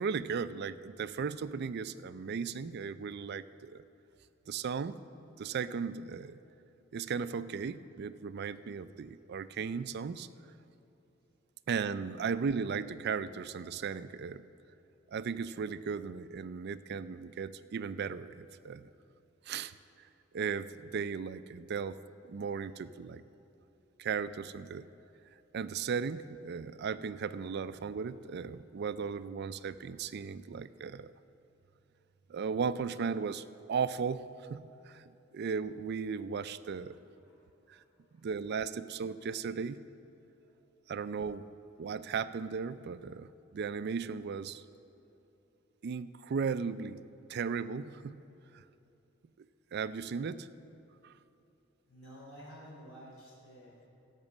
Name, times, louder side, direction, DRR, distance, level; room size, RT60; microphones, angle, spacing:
voice 1, 0.0-3.8 4.5-5.0 5.4-6.4 6.9-10.3 11.7-14.5 15.1-18.9 19.5-19.7 20.3-22.0 22.3-23.2 24.0-24.9 25.5-31.1 32.3-35.0 35.3-37.0 37.7-37.8 38.2-39.8 40.9-41.5 41.8-44.6 45.8-47.0 47.3-48.2 48.5-48.6 49.7-50.5 51.0-51.1, right 6 dB, 55° right, 14 dB, 0.4 m, -36 dB
voice 2, 36.8-38.3 40.4-40.6 41.8-41.9 51.8-53.9, equal, 75° left, -5 dB, 3.5 m, -54 dB
16.0 x 6.0 x 7.2 m, 2.9 s
head